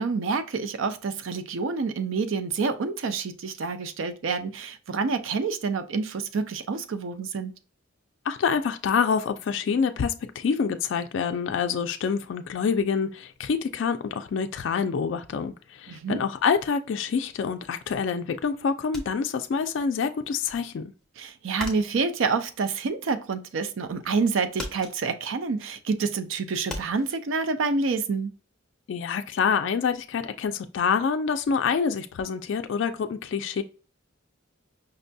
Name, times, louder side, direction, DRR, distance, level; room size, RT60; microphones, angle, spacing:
voice 1, 0.0-7.5 15.9-16.2 21.2-28.3, right 4 dB, 75° right, 0.4 m, -28 dB
voice 2, 8.3-20.9 28.9-33.6, left 6 dB, 65° left, 0.3 m, -26 dB
sound 1, 18.9-20.0 20.3-23.5 23.9-24.3 24.5-27.2, left 1 dB, ahead, 0.5 m, -39 dB
5.3 x 2.2 x 2.6 m
head